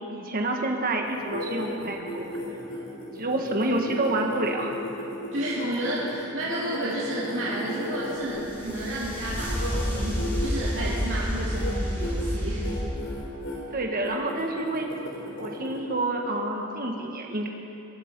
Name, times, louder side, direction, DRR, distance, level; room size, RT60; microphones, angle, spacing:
voice 1, 0.1-2.2 3.2-4.7 13.7-14.9 15.4-17.5, right 2 dB, 45° right, 1 dB, 1.4 m, -28 dB
sound 1, 1.0-8.9 9.3-11.0 11.4-11.7 12.0-12.3 12.6-13.6 14.0-15.8, left 1 dB, 85° left, 3.9 m, -35 dB
voice 2, 5.3-12.7, right 1 dB, 65° right, -7 dB, 2.2 m, -31 dB
sound 2, 8.2-12.8, equal, 10° left, 4.5 m, -29 dB
22.5 x 12.0 x 5.3 m, 2.9 s
head